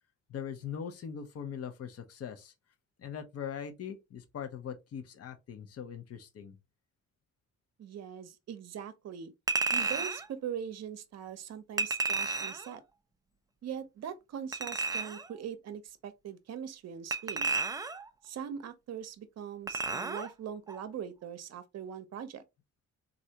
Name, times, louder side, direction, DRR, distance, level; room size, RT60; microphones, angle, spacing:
voice 1, 0.3-2.5 3.0-6.6, left 8 dB, 50° left, 0.8 m, -41 dB
voice 2, 7.8-9.3 9.7-12.8 13.6-17.6 18.2-22.4, right 8 dB, 60° right, 0.7 m, -41 dB
Chink clink, 9.5-10.3 11.8-12.7 14.5-15.3 17.1-18.1 19.7-20.3 20.7-20.8, right 3 dB, 10° right, 0.4 m, -32 dB
3.3 x 2.6 x 2.8 m
cardioid pair, 90°, 30 cm